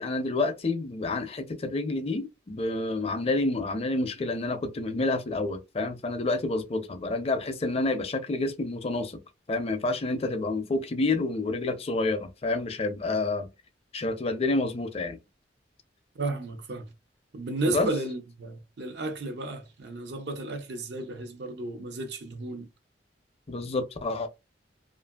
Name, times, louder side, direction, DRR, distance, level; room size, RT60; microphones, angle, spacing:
voice 1, 0.0-9.2 9.5-13.5 13.9-15.2 17.7-17.9 23.5-24.3, left 2 dB, 35° left, 0.5 m, -29 dB
voice 2, 16.1-16.9 17.3-22.7, right 2 dB, 75° right, 0.6 m, -33 dB
2.7 x 2.5 x 2.2 m
head